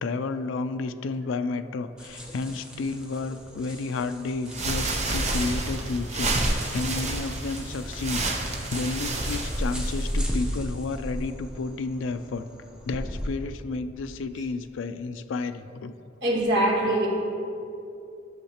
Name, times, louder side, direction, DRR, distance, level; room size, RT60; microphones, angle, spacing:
voice 1, 0.0-12.5 12.8-15.9, left 3 dB, 70° left, 10 dB, 0.4 m, -31 dB
sound 1, 2.0-13.3, equal, 5° right, 0.7 m, -36 dB
sound 2, 4.5-10.2, right 2 dB, 35° right, 0.8 m, -29 dB
voice 2, 16.2-17.1, right 1 dB, 60° right, -2 dB, 1.5 m, -23 dB
11.5 x 6.3 x 2.9 m, 2.6 s
head